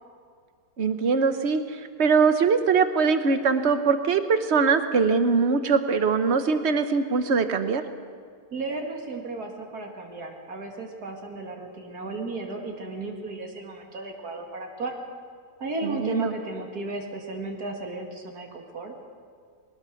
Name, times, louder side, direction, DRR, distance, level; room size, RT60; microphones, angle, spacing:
voice 1, 0.8-7.8 15.8-16.3, right 5 dB, 45° right, 9 dB, 1.2 m, -22 dB
voice 2, 8.5-14.9 15.6-18.9, right 3 dB, 75° right, 2 dB, 2.8 m, -34 dB
21.5 x 19.0 x 6.5 m, 2.1 s
omnidirectional pair, 1.7 m